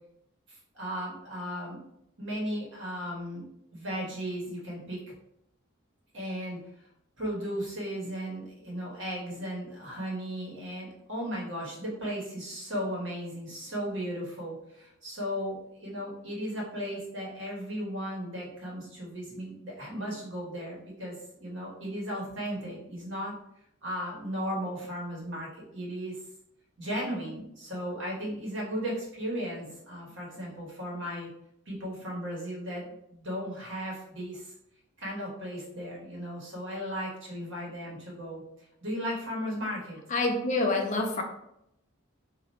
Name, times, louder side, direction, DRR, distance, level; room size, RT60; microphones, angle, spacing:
voice 1, 0.5-1.8 2.2-3.4 3.7-5.1 6.1-6.7 7.2-23.3 23.8-26.2 26.8-31.3 31.7-34.5 35.0-38.4 38.8-40.0, equal, 65° right, -4 dB, 1.4 m, -36 dB
voice 2, 40.1-41.2, left 2 dB, 35° left, 3 dB, 0.5 m, -27 dB
2.9 x 2.5 x 4.1 m, 0.78 s
head